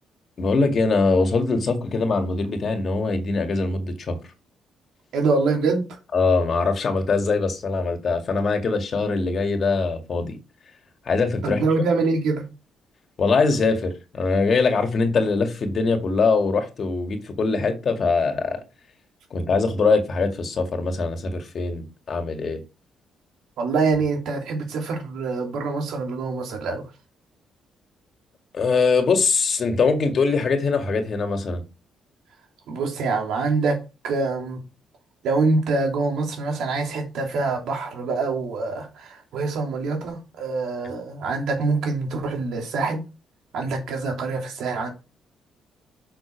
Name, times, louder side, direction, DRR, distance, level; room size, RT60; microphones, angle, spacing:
voice 1, 0.4-4.2 6.1-10.4 11.1-11.6 13.2-18.6 19.3-22.6 28.5-31.6, left 4 dB, 50° left, 2.0 m, -22 dB
voice 2, 5.1-6.0 11.4-12.5 23.6-26.9 32.7-34.6 35.2-43.0 43.5-44.9, right 3 dB, 80° right, 2.8 m, -25 dB
6.9 x 6.0 x 4.5 m
cardioid pair, 90°, 0 cm